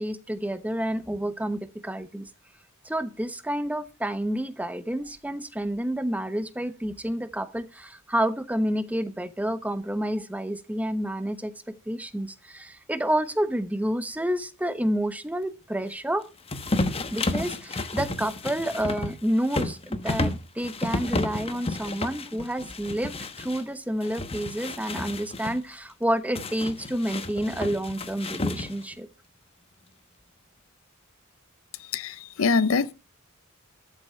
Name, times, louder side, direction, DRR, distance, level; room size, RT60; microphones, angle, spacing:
voice 1, 0.0-2.3 2.8-16.2 17.1-29.1, right 1 dB, 5° right, 0.9 m, -29 dB
sound 1, 16.5-23.6 24.0-25.6 26.4-28.9, left 2 dB, 25° left, 1.1 m, -31 dB
voice 2, 31.9-32.9, left 4 dB, 65° left, 0.6 m, -24 dB
13.0 x 7.4 x 5.7 m
head